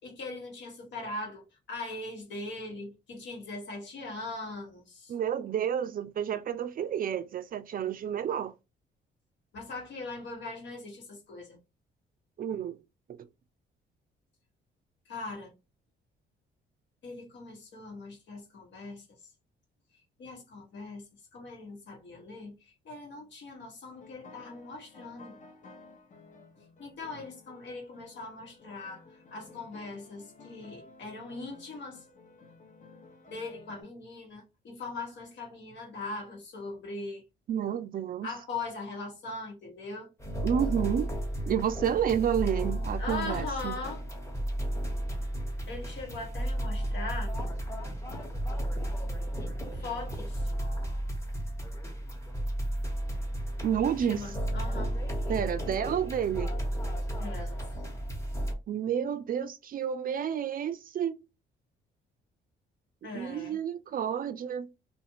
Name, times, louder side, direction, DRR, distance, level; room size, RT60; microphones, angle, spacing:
voice 1, 0.0-5.1 9.5-11.6 15.1-15.5 17.0-19.1 20.2-21.0 21.3-25.4 26.8-32.0 33.3-37.2 38.2-40.1 43.0-44.0 45.7-47.3 49.7-50.5 53.8-55.0 57.2-57.6 63.0-63.6, left 3 dB, 65° left, 1.3 m, -40 dB
voice 2, 5.1-8.5 12.4-12.8 13.1-13.2 37.5-38.3 40.4-41.1 41.5-43.8 53.6-54.4 55.3-56.5 58.7-61.2 63.1-64.7, right 9 dB, 45° right, 0.4 m, -30 dB
sound 1, 23.9-33.8, left 3 dB, 40° left, 0.8 m, -54 dB
sound 2, 40.2-58.5, right 1 dB, 15° left, 1.0 m, -33 dB
2.5 x 2.4 x 2.8 m
cardioid pair, 90°, 20 cm